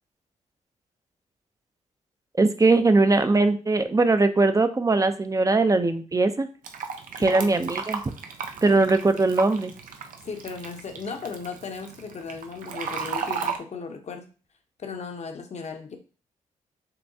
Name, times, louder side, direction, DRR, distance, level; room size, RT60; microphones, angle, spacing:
voice 1, 2.4-6.5 7.2-8.0 8.6-9.7, right 3 dB, 25° right, 10 dB, 0.5 m, -20 dB
Fill (with liquid), 6.6-13.6, right 6 dB, 75° right, 0.6 m, -34 dB
voice 2, 10.2-14.3 14.8-16.0, left 5 dB, 50° left, 5 dB, 0.9 m, -36 dB
6.6 x 2.2 x 2.7 m, 0.36 s
cardioid pair, 60°, 14 cm